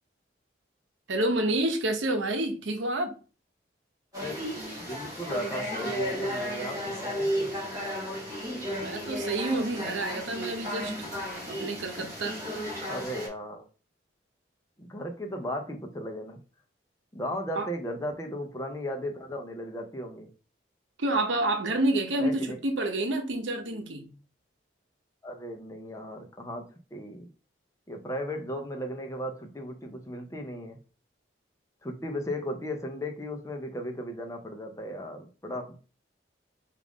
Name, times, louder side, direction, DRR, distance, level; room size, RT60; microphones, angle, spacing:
voice 1, 1.1-3.1 8.8-10.9 11.5-12.4 17.6-17.7 21.0-24.1, right 1 dB, 85° right, 0.8 m, -28 dB
sound 1, 4.1-13.3, equal, 20° right, 1.8 m, -34 dB
voice 2, 4.8-7.6 12.9-13.6 14.8-16.4 17.1-20.3 22.2-22.6 25.2-27.2 27.9-30.8 31.8-35.8, equal, 15° left, 0.5 m, -36 dB
4.8 x 2.5 x 3.5 m
head